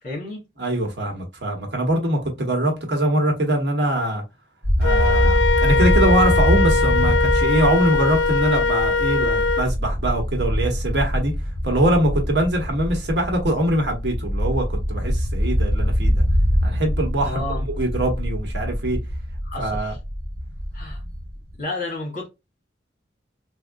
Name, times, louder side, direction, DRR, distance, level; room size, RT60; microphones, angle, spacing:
voice 1, 0.0-0.4 17.2-17.6 19.4-20.0 20.7-21.0 21.6-22.3, left 2 dB, 50° left, 1.4 m, -31 dB
voice 2, 0.6-4.2 4.8-11.3 11.6-16.2 16.6-19.0 19.6-19.9, right 1 dB, 75° right, 1.1 m, -23 dB
sound 1, 4.6-21.5, equal, 20° right, 1.0 m, -23 dB
Wind instrument woodwind instrument, 4.8-9.7, left 4 dB, 80° left, 0.3 m, -21 dB
3.5 x 2.2 x 2.3 m
head